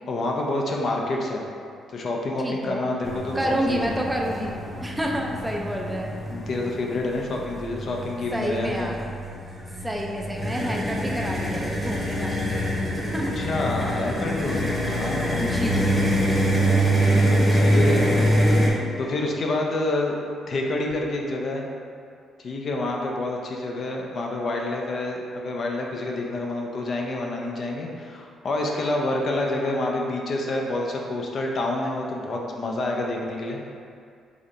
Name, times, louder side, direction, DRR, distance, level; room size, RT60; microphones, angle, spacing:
voice 1, 0.1-1.4 1.9-4.0 6.3-9.1 13.4-15.4 17.5-18.2 19.0-20.2 20.5-21.6 22.4-33.6, left 2 dB, 55° left, 0 dB, 0.5 m, -28 dB
voice 2, 2.4-2.9 3.3-6.1 8.3-9.0 9.8-13.3 15.4-16.0, equal, 10° right, -1 dB, 0.4 m, -29 dB
sound 1, 3.0-18.7, right 1 dB, 10° left, 0.9 m, -25 dB
Marimba xylophone, 14.3-19.4, left 2 dB, 70° right, 0.9 m, -37 dB
5.0 x 2.7 x 2.5 m, 2.3 s
cardioid pair, 90°, 0 cm